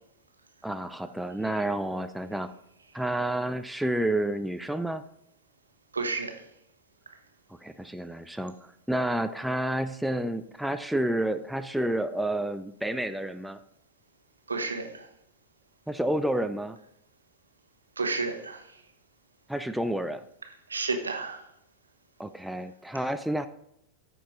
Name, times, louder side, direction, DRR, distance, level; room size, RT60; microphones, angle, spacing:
voice 1, 0.6-2.5 2.9-5.0 7.6-13.6 15.9-16.8 19.5-20.2 22.2-23.5, right 1 dB, ahead, 0.4 m, -30 dB
voice 2, 5.9-6.3 14.5-15.1 18.0-18.6 20.7-21.4, right 3 dB, 75° right, 1.1 m, -31 dB
13.5 x 4.6 x 3.9 m
figure-of-eight pair, 90°, 0 cm